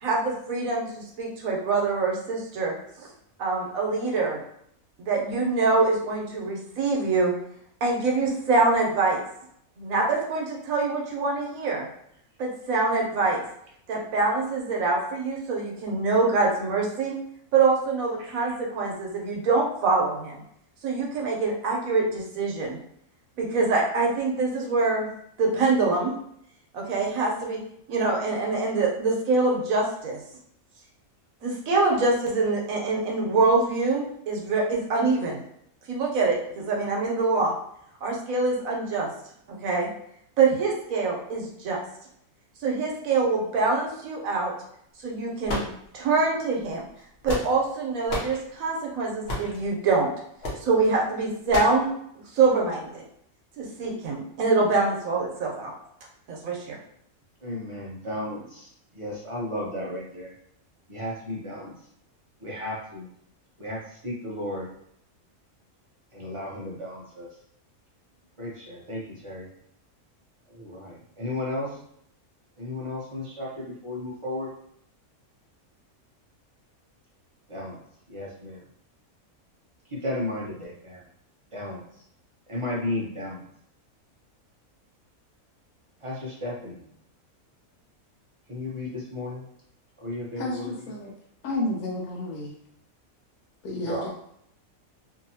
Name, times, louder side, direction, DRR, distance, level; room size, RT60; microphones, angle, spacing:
voice 1, 0.0-2.7 3.4-4.4 5.0-7.3 7.8-9.2 9.8-11.9 12.4-13.4 13.9-17.1 17.5-20.4 20.8-22.8 23.4-25.1 25.4-26.1 26.7-27.6 27.9-30.2 31.4-35.4 35.9-37.5 38.0-39.1 39.5-39.9 40.4-41.8 42.6-44.5 45.0-45.6 45.9-46.8 47.2-50.1 50.6-51.9 52.3-53.0 53.6-55.7 56.3-56.8, right 3 dB, 70° right, -1 dB, 1.1 m, -24 dB
sound 1, 45.5-46.2 47.0-47.7 48.1-48.4 49.3-49.6 50.4-50.7 51.5-51.8, left 1 dB, 55° left, 0.9 m, -31 dB
voice 2, 57.4-58.7 58.9-60.3 60.9-61.7 62.4-63.1 63.6-64.6 66.1-67.3 68.4-69.5 70.5-71.7 72.6-74.5 77.5-77.8 78.1-78.6 79.9-81.0 81.5-81.8 82.5-83.4 86.0-86.8 88.5-89.4 90.0-90.7 93.8-94.1, left 1 dB, 50° right, -5 dB, 0.4 m, -34 dB
voice 3, 90.4-91.1 91.4-92.6 93.6-94.1, left 2 dB, 85° left, -2 dB, 1.1 m, -31 dB
2.7 x 2.7 x 2.7 m, 0.70 s
omnidirectional pair, 1.5 m